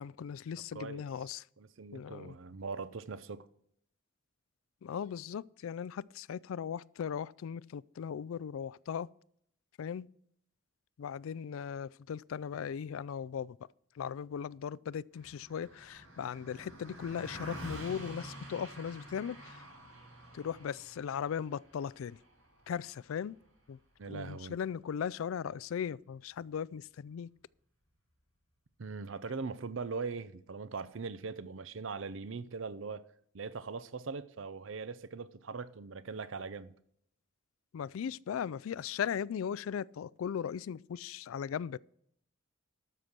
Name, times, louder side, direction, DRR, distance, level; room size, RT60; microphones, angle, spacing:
voice 1, 0.0-1.4 1.9-2.4 4.8-9.1 9.8-10.1 11.0-13.6 14.0-19.6 20.3-22.2 22.7-23.4 23.7-23.8 24.1-27.3 37.7-41.8, left 7 dB, 85° left, 0.3 m, -38 dB
voice 2, 0.7-1.0 1.6-3.5 24.0-24.6 28.8-33.0 33.3-36.7, right 4 dB, 70° right, 0.6 m, -41 dB
Car passing by, 15.1-24.7, equal, 85° right, 5.9 m, -49 dB
12.5 x 6.6 x 6.0 m
head